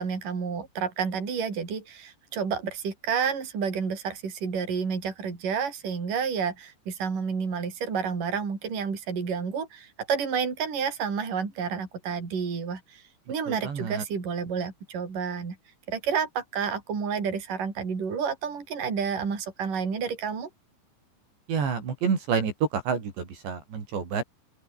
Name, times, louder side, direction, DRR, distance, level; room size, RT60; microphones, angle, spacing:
voice 1, 0.0-13.0 13.3-15.6 15.9-20.5, right 6 dB, 45° right, 6.7 m, -30 dB
voice 2, 13.5-14.0 21.5-24.2, right 6 dB, 70° right, 7.2 m, -28 dB
open air
omnidirectional pair, 5.3 m